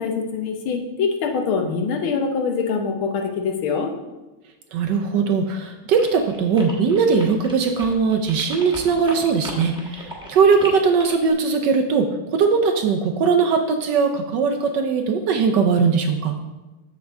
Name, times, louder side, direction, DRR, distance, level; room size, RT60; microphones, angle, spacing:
voice 1, 0.0-3.9, left 5 dB, 85° left, 4 dB, 1.7 m, -24 dB
voice 2, 4.7-16.3, right 5 dB, 70° right, 4 dB, 1.1 m, -20 dB
sound 1, 5.9-11.3, equal, 5° right, 0.9 m, -37 dB
7.5 x 6.8 x 3.4 m, 1.1 s
omnidirectional pair, 2.2 m